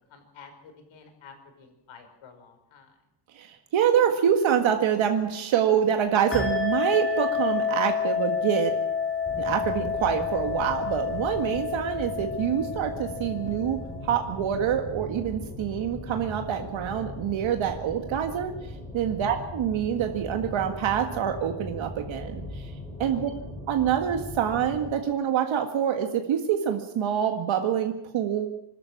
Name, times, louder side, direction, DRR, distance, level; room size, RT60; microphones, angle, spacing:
voice 1, 0.1-2.9 19.0-19.3 23.1-23.4, left 5 dB, 75° left, 6 dB, 5.3 m, -50 dB
voice 2, 3.3-8.7 9.4-18.5 18.9-22.7 23.0-23.3 23.7-28.6, right 9 dB, 75° right, 5 dB, 1.9 m, -26 dB
sound 1, 6.3-14.4, left 6 dB, 25° left, 2.9 m, -29 dB
sound 2, 9.2-24.9, left 1 dB, 10° left, 4.8 m, -39 dB
26.0 x 13.0 x 8.7 m, 0.83 s
cardioid pair, 180°, 48 cm